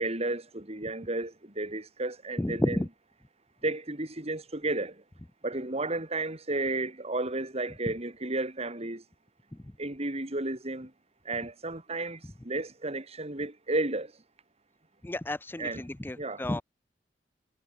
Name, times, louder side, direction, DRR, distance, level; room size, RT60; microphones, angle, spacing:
voice 1, 0.0-2.8 3.6-4.9 5.4-9.0 9.8-10.9 11.2-12.2 12.4-14.1 15.6-15.8 16.2-16.4, right 2 dB, 35° right, 3.3 m, -32 dB
voice 2, 2.4-2.9 9.5-9.7 15.0-16.6, left 1 dB, 10° left, 0.5 m, -31 dB
head